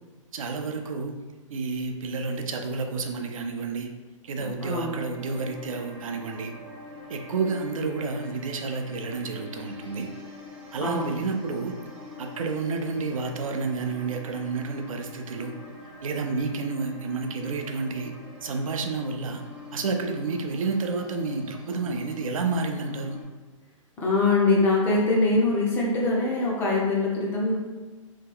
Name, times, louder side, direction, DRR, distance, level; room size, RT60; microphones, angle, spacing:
voice 1, 0.3-1.2 1.5-3.9 4.2-6.5 7.1-10.1 10.7-11.8 12.2-15.5 16.0-18.1 18.4-19.4 19.7-23.2, right 4 dB, 80° right, 4 dB, 0.5 m, -30 dB
voice 2, 4.6-5.1 10.8-11.1 24.0-27.5, left 2 dB, 10° left, -4 dB, 0.3 m, -23 dB
sound 1, 5.0-23.2, left 3 dB, 50° right, 0.9 m, -45 dB
2.8 x 2.2 x 3.5 m, 1.3 s
hypercardioid pair, 155°, 17 cm